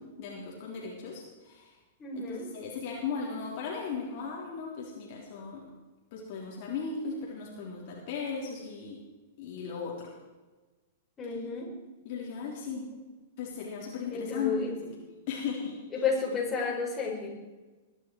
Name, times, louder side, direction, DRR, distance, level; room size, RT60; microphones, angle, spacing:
voice 1, 0.0-1.7 2.1-5.6 6.1-9.0 9.4-10.1 11.3-11.4 12.0-12.9 13.4-14.7 15.3-16.0, left 5 dB, 50° left, -3 dB, 3.7 m, -37 dB
voice 2, 2.0-2.5 11.2-11.7 14.1-14.7 15.9-17.3, left 5 dB, 25° left, -2 dB, 5.0 m, -31 dB
22.0 x 11.0 x 4.7 m, 1.2 s
figure-of-eight pair, 105°, 0 cm